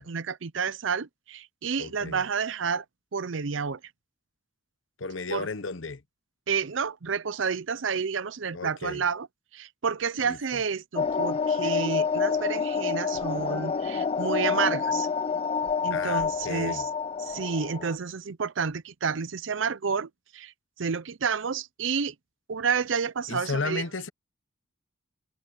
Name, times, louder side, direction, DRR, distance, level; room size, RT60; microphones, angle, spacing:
voice 1, 0.0-2.8 3.1-3.8 5.3-5.5 6.5-9.3 9.5-15.1 15.8-16.8 17.2-20.5 20.8-22.1 22.5-23.8, right 6 dB, 70° right, 0.6 m, -30 dB
voice 2, 1.8-2.2 5.0-6.0 8.5-9.0 10.2-10.6 15.9-16.9 23.3-24.1, left 3 dB, 75° left, 1.0 m, -34 dB
sound 1, 11.0-17.9, left 5 dB, 30° left, 0.4 m, -28 dB
head